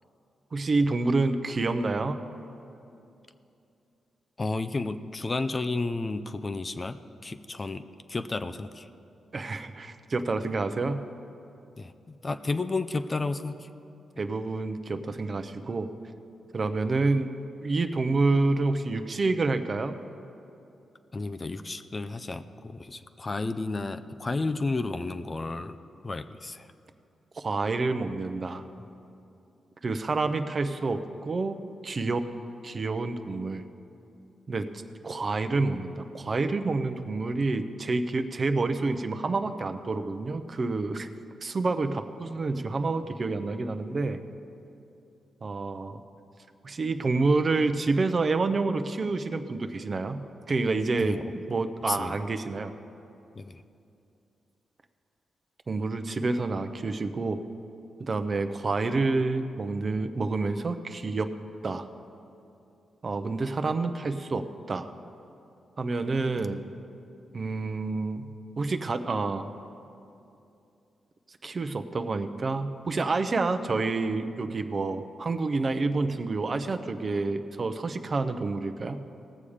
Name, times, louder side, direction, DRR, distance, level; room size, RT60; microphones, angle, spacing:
voice 1, 0.5-2.2 9.3-11.1 14.2-15.9 16.5-17.3 17.6-20.0 27.4-28.6 29.8-31.6 31.8-32.2 32.6-33.6 34.5-34.7 35.0-41.1 41.4-44.2 45.4-46.0 46.6-52.7 55.7-57.4 58.0-61.3 61.6-61.9 63.0-64.9 65.8-66.7 67.3-68.3 68.6-69.5 71.4-79.1, right 3 dB, 45° right, 8 dB, 0.7 m, -28 dB
voice 2, 4.4-8.9 11.8-13.7 21.1-25.8 26.0-26.7 28.8-28.9 51.0-51.2 51.9-52.2 53.4-53.6 66.4-66.5, left 3 dB, 35° left, 9 dB, 0.5 m, -32 dB
18.5 x 7.0 x 5.0 m, 2.7 s
cardioid pair, 65°, 0 cm